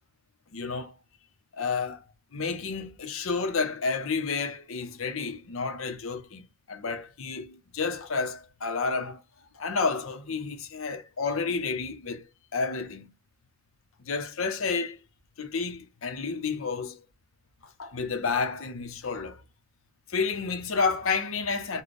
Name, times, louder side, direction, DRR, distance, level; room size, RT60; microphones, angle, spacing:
voice 1, 0.5-0.9 1.6-2.0 2.3-9.2 9.5-13.1 14.0-15.0 15.4-17.0 17.8-19.4 20.1-21.8, left 4 dB, 80° left, 0.7 m, -30 dB
4.0 x 2.3 x 3.2 m
head